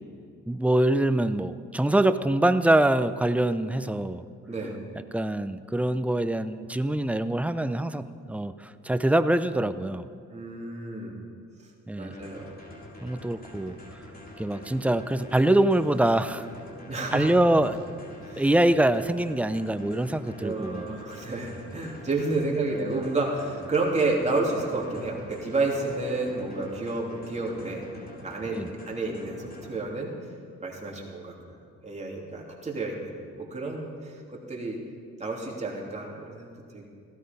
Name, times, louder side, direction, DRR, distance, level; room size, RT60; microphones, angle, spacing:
voice 1, 0.5-4.2 5.1-8.5 8.8-10.0 11.9-12.1 13.0-13.8 14.4-16.5 17.1-17.8 18.4-20.9 28.5-28.7, right 1 dB, 5° right, 12 dB, 0.5 m, -24 dB
voice 2, 4.5-4.8 10.3-11.2 11.9-12.5 16.9-17.3 18.2-18.5 20.4-27.8 28.2-30.1 30.6-31.6 31.8-34.8 35.2-36.9, right 3 dB, 20° right, -2 dB, 3.2 m, -30 dB
sound 1, 12.1-29.7, left 1 dB, 30° left, 3.3 m, -45 dB
16.0 x 13.0 x 5.4 m, 2.3 s
cardioid pair, 90°, 30 cm